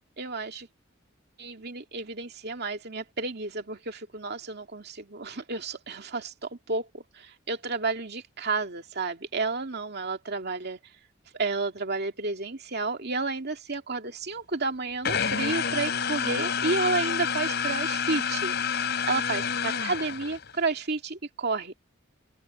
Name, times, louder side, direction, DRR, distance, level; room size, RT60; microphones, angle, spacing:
voice 1, 0.2-0.7 1.4-10.8 11.3-21.7, right 3 dB, 55° right, 2.5 m, -31 dB
sound 1, 15.0-20.6, left 6 dB, 55° left, 4.7 m, -28 dB
open air
head